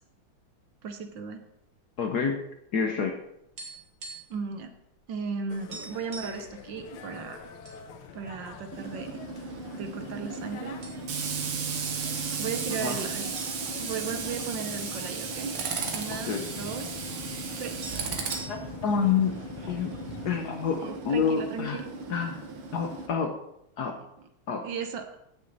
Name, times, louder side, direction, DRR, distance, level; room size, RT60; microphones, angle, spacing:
voice 1, 0.8-1.4 4.3-4.7 5.1-7.4 8.1-9.2 9.7-10.8 12.4-13.4 13.8-15.6 15.9-16.9 17.6-17.8 20.8-21.8 24.6-25.1, right 5 dB, 65° right, 7 dB, 1.5 m, -36 dB
voice 2, 2.0-2.4 2.7-3.2 12.8-13.0 16.1-16.5 18.5-19.9 20.2-21.8 22.1-22.4 22.7-23.3 23.8-24.0 24.5-24.7, left 6 dB, 55° left, 5 dB, 1.3 m, -28 dB
sound 1, 3.4-4.5 4.7-4.9 5.3-5.4 5.7-6.5 7.1-7.8 8.2-8.3 9.0-9.6 10.3-10.5 10.8-11.4 11.7-11.8 12.9-14.9 15.2-15.3 15.5-16.5 17.5-17.6 17.8-18.9, right 4 dB, 50° right, 2.4 m, -43 dB
sound 2, 5.5-20.4, left 7 dB, 85° left, 1.7 m, -45 dB
Tools, 8.7-23.1, right 5 dB, 85° right, 2.2 m, -35 dB
16.0 x 6.3 x 4.0 m, 0.80 s
omnidirectional pair, 2.3 m